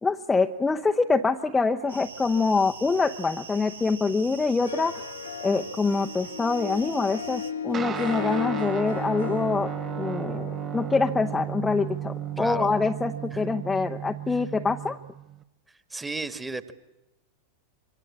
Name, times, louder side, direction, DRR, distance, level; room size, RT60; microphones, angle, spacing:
voice 1, 0.0-5.0 5.4-9.7 10.0-15.0, left 4 dB, 10° left, 3 dB, 0.9 m, -25 dB
sound 1, 1.9-7.5, right 4 dB, 75° right, 1.7 m, -43 dB
Harp, 4.5-13.1, left 7 dB, 70° left, 1.3 m, -37 dB
Guitar, 7.7-15.4, right 10 dB, 25° right, 1.0 m, -34 dB
voice 2, 12.4-12.7 14.3-14.4 15.9-16.7, right 3 dB, 10° right, 12 dB, 1.7 m, -33 dB
26.0 x 24.0 x 8.5 m, 0.95 s
figure-of-eight pair, 90°, 0 cm